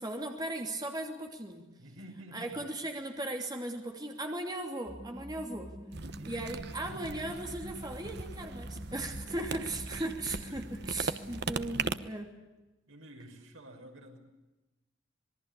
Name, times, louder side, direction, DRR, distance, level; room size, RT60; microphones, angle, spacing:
voice 1, 0.0-1.7 2.3-5.7 6.2-12.3, right 1 dB, 20° right, 3 dB, 2.9 m, -37 dB
voice 2, 1.8-2.7 6.1-6.5 9.3-9.9 10.3-10.7 11.5-11.9 12.9-14.2, right 1 dB, 80° right, 4 dB, 6.1 m, -51 dB
sound 1, 4.9-12.1, equal, ahead, 0.9 m, -46 dB
sound 2, 5.9-12.0, right 4 dB, 55° right, 1.0 m, -39 dB
26.5 x 21.5 x 8.4 m, 1.1 s
head